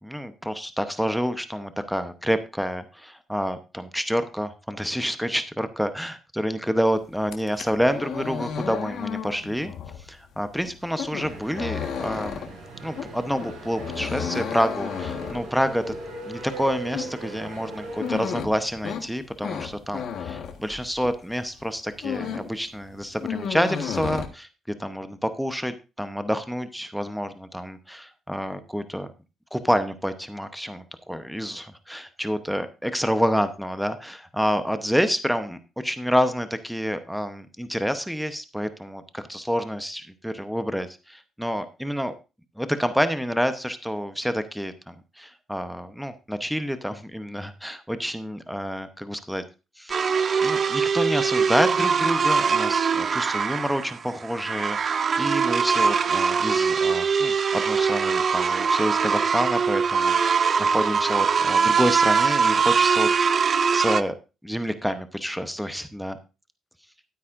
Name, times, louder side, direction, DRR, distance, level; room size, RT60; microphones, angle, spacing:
voice 1, 0.0-9.7 10.1-15.9 16.2-29.1 29.5-42.1 42.6-49.4 49.8-50.0 50.4-64.1 64.4-66.2, equal, ahead, 10 dB, 0.9 m, -28 dB
sound 1, 7.2-21.3 21.6-22.6 22.9-24.3, left 7 dB, 70° left, 1.4 m, -33 dB
sound 2, 11.1-18.2, right 2 dB, 85° right, 5.7 m, -39 dB
sound 3, 49.9-64.0, right 6 dB, 45° right, 0.5 m, -22 dB
12.5 x 9.2 x 2.6 m, 0.29 s
cardioid pair, 90°, 0 cm